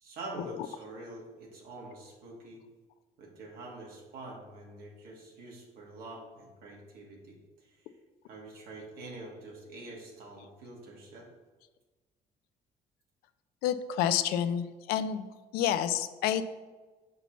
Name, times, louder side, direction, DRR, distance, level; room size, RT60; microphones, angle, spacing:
voice 1, 0.0-2.6 3.2-7.9 8.3-11.3, right 2 dB, 80° right, -1 dB, 1.6 m, -46 dB
voice 2, 13.6-15.3 15.5-16.5, left 10 dB, 90° left, 11 dB, 0.4 m, -29 dB
5.7 x 5.6 x 3.0 m, 1.3 s
cardioid pair, 100°, 15 cm